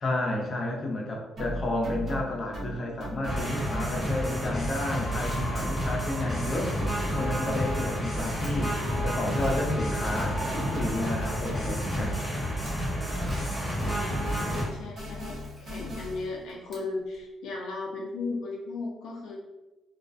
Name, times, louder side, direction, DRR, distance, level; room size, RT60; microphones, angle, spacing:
voice 1, 0.0-6.8 7.1-12.1, left 1 dB, 45° left, -1 dB, 0.6 m, -31 dB
sound 1, 1.4-4.8 5.1-12.4 12.6-16.4, equal, 50° right, 0.9 m, -38 dB
sound 2, 3.2-14.6, equal, 10° left, 1.0 m, -30 dB
Camera, 5.2-17.3, equal, 30° right, 1.3 m, -50 dB
voice 2, 9.4-9.8 14.5-19.4, left 3 dB, 85° left, -1 dB, 0.3 m, -36 dB
2.3 x 2.1 x 2.5 m, 1.1 s
cardioid pair, 90°, 0 cm